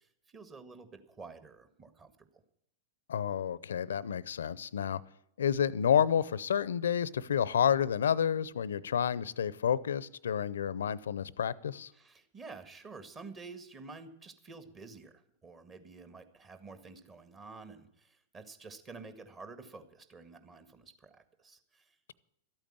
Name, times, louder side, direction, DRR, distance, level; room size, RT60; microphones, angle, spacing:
voice 1, 0.0-2.4 11.9-15.1 15.4-22.0, right 4 dB, 25° right, 9 dB, 1.9 m, -50 dB
voice 2, 3.1-5.0 5.4-11.9, left 8 dB, 80° left, 21 dB, 0.6 m, -30 dB
13.0 x 8.9 x 9.0 m, 0.75 s
hypercardioid pair, 105°, 0 cm